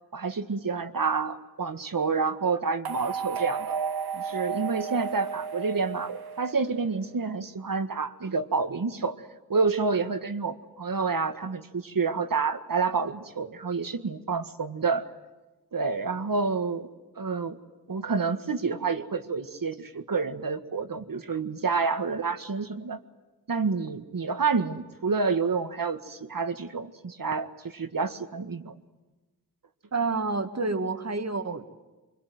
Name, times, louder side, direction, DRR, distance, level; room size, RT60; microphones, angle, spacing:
voice 1, 0.1-3.8 4.1-9.2 9.5-15.1 15.7-16.9 17.2-17.6 17.9-23.0 23.5-28.7, right 4 dB, 65° right, 9 dB, 1.8 m, -28 dB
sound 1, 2.8-7.1, right 6 dB, 85° right, 0.8 m, -33 dB
voice 2, 29.9-31.7, right 3 dB, 45° right, 8 dB, 2.1 m, -28 dB
25.0 x 24.5 x 9.5 m, 1.2 s
wide cardioid pair, 80°, 36 cm